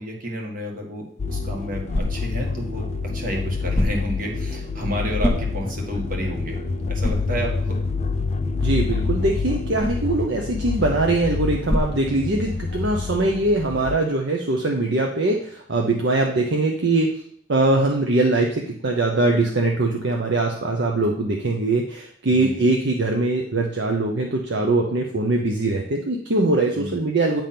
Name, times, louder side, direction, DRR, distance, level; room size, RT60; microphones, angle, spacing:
voice 1, 0.0-2.8 3.1-6.6 6.9-7.8 22.3-22.7 26.7-27.0, equal, 45° right, 1 dB, 1.7 m, -31 dB
sound 1, 1.0-12.8, left 1 dB, 15° left, 0.8 m, -32 dB
sound 2, 1.2-14.0, left 4 dB, 35° left, 0.3 m, -27 dB
sound 3, 1.2-10.3, right 4 dB, 90° right, 1.6 m, -40 dB
voice 2, 8.6-17.1 17.5-27.4, right 2 dB, 65° right, 1 dB, 0.8 m, -22 dB
9.0 x 3.6 x 5.8 m, 0.63 s
head